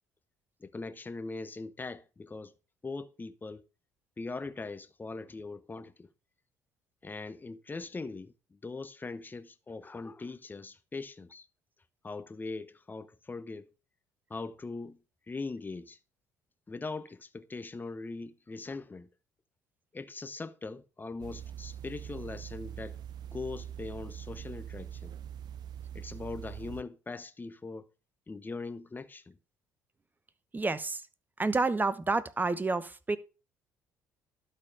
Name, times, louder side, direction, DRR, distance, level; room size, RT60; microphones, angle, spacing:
voice 1, 0.6-2.5 2.8-3.6 4.2-6.1 7.0-11.5 12.0-13.7 14.3-15.0 15.3-16.0 16.7-19.1 19.9-23.0 23.3-25.1 25.9-27.9 28.3-29.4, left 3 dB, 25° left, 1.0 m, -41 dB
sound 1, 21.2-26.8, right 10 dB, 60° right, 0.6 m, -43 dB
voice 2, 30.5-31.0 31.4-33.2, right 3 dB, 20° right, 1.0 m, -29 dB
12.0 x 4.4 x 4.9 m
hypercardioid pair, 60°, 8 cm